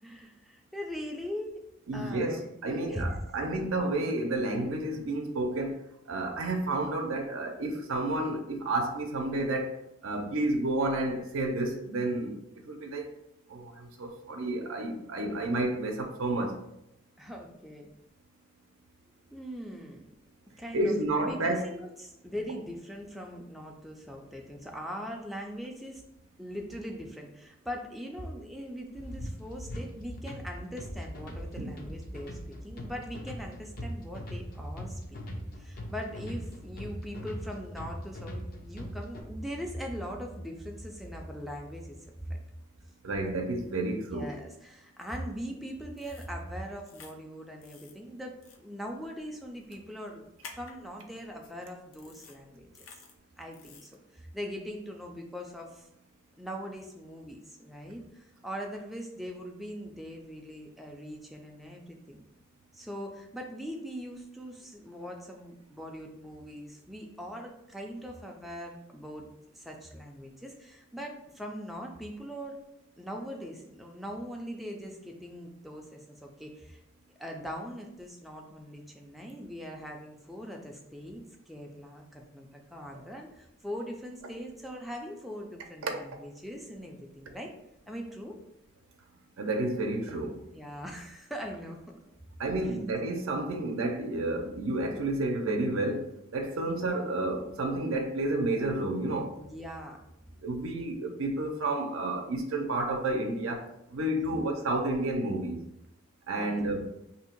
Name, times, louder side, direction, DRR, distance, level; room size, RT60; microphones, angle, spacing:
voice 1, 0.0-1.6 1.9-3.0 17.2-17.9 19.3-20.0 20.6-20.9 21.2-26.0 26.4-42.4 44.1-50.2 50.5-52.7 53.4-55.9 56.4-62.2 62.7-69.3 69.5-72.6 73.0-76.8 77.2-87.5 87.9-88.4 90.5-91.8 92.6-92.7 99.4-100.0 104.2-104.4 106.4-106.5, equal, ahead, 0 dB, 0.4 m, -41 dB
voice 2, 1.9-12.4 12.6-13.1 13.5-16.6 20.7-21.7 31.6-31.7 43.0-44.3 85.8-86.0 89.4-90.4 92.4-99.3 100.4-105.6 106.3-106.9, right 2 dB, 85° right, 3 dB, 0.5 m, -31 dB
sound 1, 28.9-39.2, equal, 45° left, 0.6 m, -41 dB
sound 2, 46.0-46.3 46.9-47.1 47.6-47.9 48.4-48.6 50.4-50.7 51.4-51.5 51.9-52.4 52.7-53.1 53.5-53.9, left 5 dB, 85° left, 0.6 m, -50 dB
2.9 x 2.7 x 4.3 m, 0.83 s
head